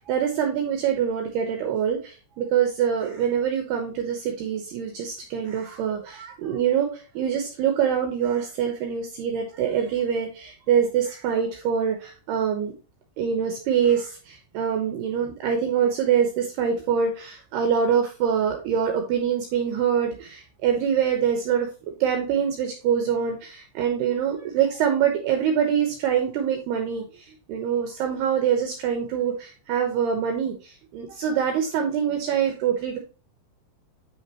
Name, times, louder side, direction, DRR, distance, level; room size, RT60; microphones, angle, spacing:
voice 1, 0.0-12.7 13.2-21.7 22.0-33.0, right 8 dB, 80° right, 4 dB, 2.4 m, -25 dB
8.6 x 6.4 x 2.9 m, 0.36 s
omnidirectional pair, 5.9 m